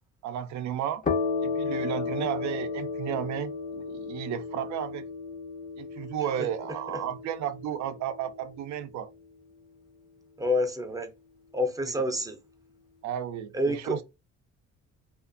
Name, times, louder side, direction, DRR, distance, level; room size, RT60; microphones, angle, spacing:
voice 1, 0.2-1.0 1.4-5.0 5.8-9.1 11.8-12.1 13.0-14.0, right 10 dB, 65° right, 0.5 m, -33 dB
sound 1, 1.0-8.5, left 4 dB, 30° left, 0.6 m, -34 dB
voice 2, 10.4-11.1 11.5-12.4 13.5-14.0, left 1 dB, 10° right, 0.5 m, -28 dB
2.5 x 2.4 x 2.4 m
cardioid pair, 90°, 30 cm